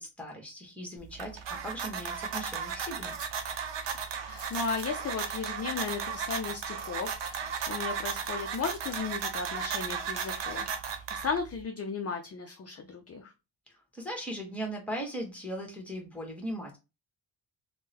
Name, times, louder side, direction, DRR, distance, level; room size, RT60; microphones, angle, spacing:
voice 1, 0.0-3.2 13.9-16.8, equal, 5° left, 2 dB, 1.1 m, -38 dB
sound 1, 1.0-11.6, right 6 dB, 60° right, 0.7 m, -35 dB
sound 2, 3.1-3.3 3.7-3.8 4.3-5.0 5.6-5.7 5.9-6.4 6.8-9.3, right 2 dB, 30° right, 1.2 m, -49 dB
voice 2, 4.2-13.3, left 5 dB, 35° left, 4 dB, 0.4 m, -35 dB
3.6 x 2.2 x 2.8 m, 0.27 s
cardioid pair, 105°, 49 cm